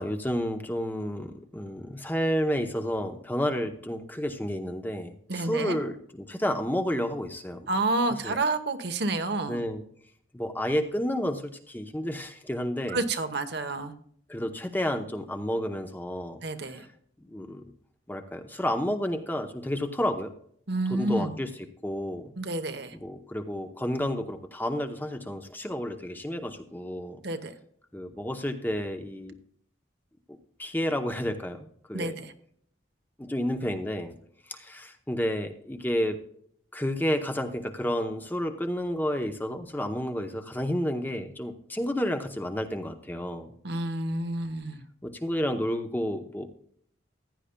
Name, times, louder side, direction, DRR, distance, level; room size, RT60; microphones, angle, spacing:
voice 1, 0.0-6.0 6.3-7.6 8.1-8.4 9.5-9.8 10.3-13.0 14.3-16.4 16.7-16.8 17.3-17.6 18.1-20.3 20.9-21.5 21.8-22.2 23.0-27.2 27.9-29.3 30.6-31.6 31.9-32.1 33.2-34.1 34.5-36.2 36.7-43.5 45.0-46.5, equal, 10° left, 6 dB, 0.7 m, -30 dB
voice 2, 5.3-5.8 7.7-9.6 12.9-13.9 16.4-16.9 20.7-21.3 22.4-23.0 27.2-27.5 31.9-32.3 43.6-44.8, right 2 dB, 55° right, 8 dB, 1.0 m, -29 dB
15.0 x 9.9 x 2.2 m, 0.64 s
head